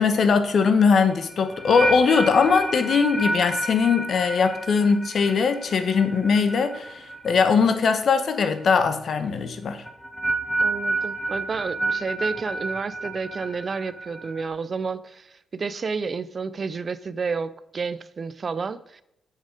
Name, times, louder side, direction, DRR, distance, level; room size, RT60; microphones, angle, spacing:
voice 1, 0.0-9.8, left 5 dB, 50° left, 10 dB, 0.9 m, -21 dB
sound 1, 0.8-8.0 8.2-8.6 9.9-14.5, right 2 dB, ahead, 1.0 m, -30 dB
voice 2, 10.6-15.3 15.5-19.0, right 5 dB, 35° right, 16 dB, 0.3 m, -30 dB
7.5 x 7.0 x 5.1 m, 0.80 s
wide cardioid pair, 145°, 0 cm